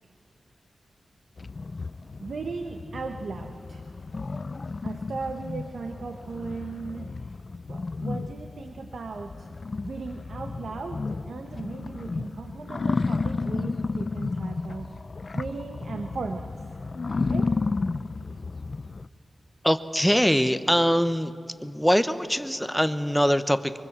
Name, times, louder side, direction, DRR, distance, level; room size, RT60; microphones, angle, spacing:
sound 1, 1.4-19.1, left 3 dB, 40° left, 0.5 m, -32 dB
voice 1, 2.2-3.8 4.8-7.1 7.7-9.5 9.8-14.9 15.3-16.5 17.2-17.5, right 4 dB, 70° right, 6 dB, 1.2 m, -37 dB
voice 2, 19.6-21.3 21.6-23.7, equal, ahead, 10 dB, 0.9 m, -23 dB
24.0 x 23.5 x 7.5 m, 2.4 s
wide cardioid pair, 105°, 0 cm